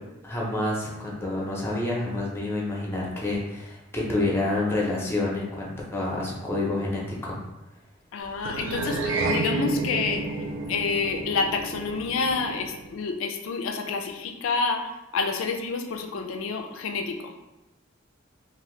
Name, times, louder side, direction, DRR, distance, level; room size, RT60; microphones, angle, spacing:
voice 1, 0.2-7.4, left 2 dB, 10° left, -4 dB, 0.6 m, -28 dB
voice 2, 8.1-17.3, left 4 dB, 90° left, 5 dB, 0.3 m, -29 dB
sound 1, 8.4-13.0, right 3 dB, 75° right, 0.4 m, -30 dB
2.7 x 2.4 x 3.1 m, 0.98 s
head